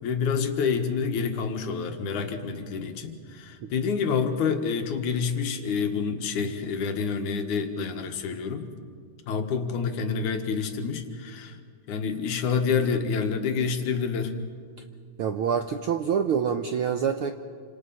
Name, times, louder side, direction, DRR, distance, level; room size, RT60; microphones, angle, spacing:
voice 1, 0.0-8.7 9.3-11.6 11.9-14.4, left 5 dB, 85° left, 6 dB, 3.0 m, -28 dB
voice 2, 15.2-17.3, right 7 dB, 75° right, 7 dB, 1.2 m, -26 dB
28.0 x 26.5 x 5.7 m, 2.2 s
omnidirectional pair, 3.4 m